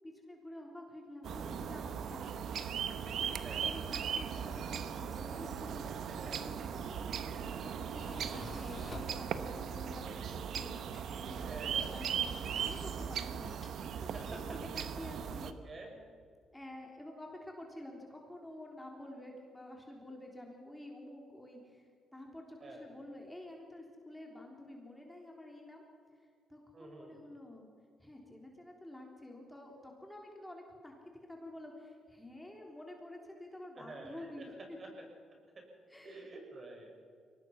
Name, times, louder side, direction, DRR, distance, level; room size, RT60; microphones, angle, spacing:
voice 1, 0.0-2.8 3.6-14.5 14.7-15.6 16.5-21.9 22.1-25.8 26.5-27.7 28.0-30.9 31.2-34.8 35.9-36.2, left 1 dB, 10° left, 0 dB, 3.6 m, -49 dB
sound 1, 1.2-15.5, right 8 dB, 65° right, 1.1 m, -38 dB
voice 2, 6.1-6.5 11.4-11.9 14.0-14.6 15.0-15.1 15.4-16.0 22.6-22.9 26.7-27.2 33.8-35.1 35.5-35.7 36.0-37.0, right 2 dB, 40° right, 2 dB, 5.9 m, -49 dB
Tools, 6.7-14.5, left 3 dB, 30° left, 4.1 m, -54 dB
23.0 x 19.0 x 6.0 m, 2.2 s
cardioid pair, 90°, 0 cm